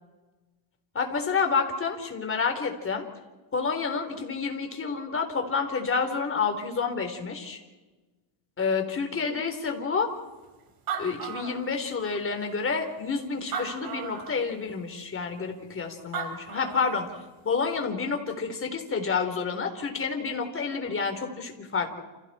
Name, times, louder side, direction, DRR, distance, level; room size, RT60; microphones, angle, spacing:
voice 1, 0.9-3.1 3.5-7.6 8.6-10.1 11.0-17.1 17.4-22.0, left 5 dB, 25° left, 5 dB, 3.9 m, -29 dB
Animal, 10.4-10.5 10.7-12.1 12.8-12.9 13.4-14.4 15.8-15.9 16.1-17.1, right 7 dB, 45° right, 4.6 m, -35 dB
29.5 x 29.0 x 4.4 m, 1.2 s
cardioid pair, 130°, 50 cm